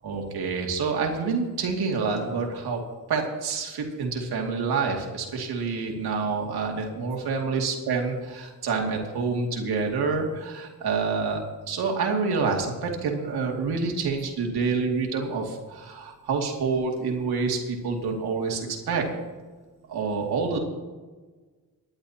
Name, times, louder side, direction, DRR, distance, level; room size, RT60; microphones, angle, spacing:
voice 1, 0.0-2.8 3.1-19.1 19.9-20.6, right 4 dB, 90° right, 1 dB, 2.5 m, -27 dB
25.5 x 11.5 x 2.9 m, 1.4 s
cardioid pair, 70°, 37 cm